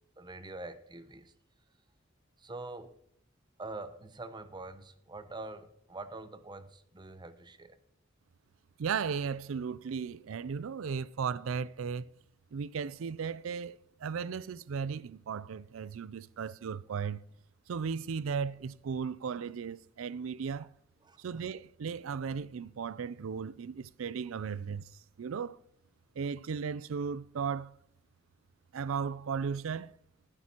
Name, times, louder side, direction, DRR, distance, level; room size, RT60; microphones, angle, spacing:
voice 1, 0.2-1.3 2.4-3.0 3.6-7.8 20.6-20.7 21.0-21.2, right 2 dB, 20° right, 0.7 m, -45 dB
voice 2, 8.8-12.1 12.5-17.2 17.7-20.7 21.2-24.9 25.2-25.6 26.2-27.7 28.7-29.9, right 6 dB, 80° right, 0.4 m, -36 dB
18.5 x 9.7 x 2.9 m
head